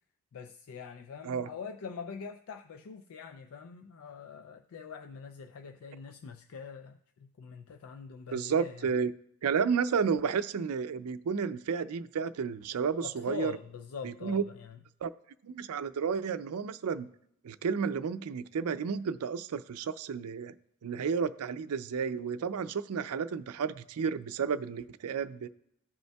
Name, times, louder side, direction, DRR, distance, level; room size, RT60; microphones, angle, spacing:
voice 1, 0.3-8.9 13.0-14.8, left 6 dB, 75° left, 0.4 m, -44 dB
voice 2, 8.3-9.1 9.4-13.5 14.0-14.4 15.0-15.1 15.4-17.1 17.4-20.5 20.8-25.5, right 6 dB, 80° right, 0.4 m, -32 dB
15.0 x 5.3 x 2.3 m
head